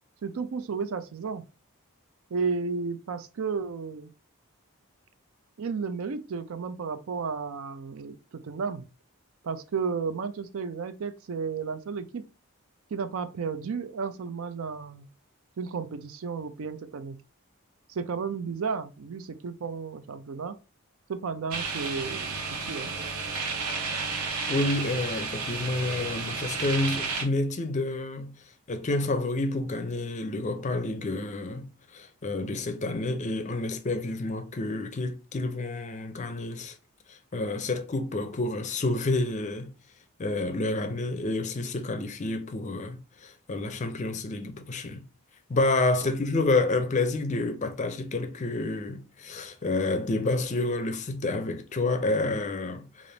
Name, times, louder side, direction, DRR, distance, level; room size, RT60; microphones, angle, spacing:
voice 1, 0.2-1.4 2.3-4.1 5.6-8.9 9.4-12.3 12.9-15.1 15.6-17.2 17.9-20.6 21.1-22.4 22.7-22.9 46.0-46.1, right 5 dB, 65° right, 0.4 m, -33 dB
sound 1, 21.5-27.2, right 4 dB, 85° right, 1.0 m, -32 dB
voice 2, 24.5-28.3 28.7-36.8 37.1-39.7 40.2-45.0 45.5-53.1, left 2 dB, 30° left, 0.5 m, -29 dB
3.4 x 2.5 x 3.8 m
head